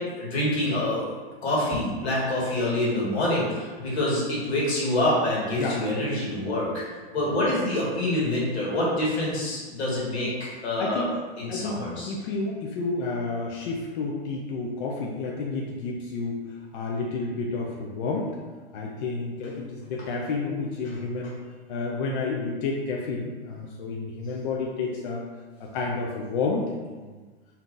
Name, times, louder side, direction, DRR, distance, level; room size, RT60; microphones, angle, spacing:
voice 1, 0.2-1.0 1.4-6.8 7.1-11.1 11.4-12.1, left 1 dB, 90° left, -5 dB, 1.4 m, -26 dB
voice 2, 10.8-11.1 11.5-16.4 16.7-18.3 18.7-21.4 21.7-25.2 25.6-26.6 27.0-27.3, left 3 dB, 55° left, -1 dB, 0.5 m, -30 dB
2.8 x 2.3 x 3.7 m, 1.4 s
hypercardioid pair, 145°, 32 cm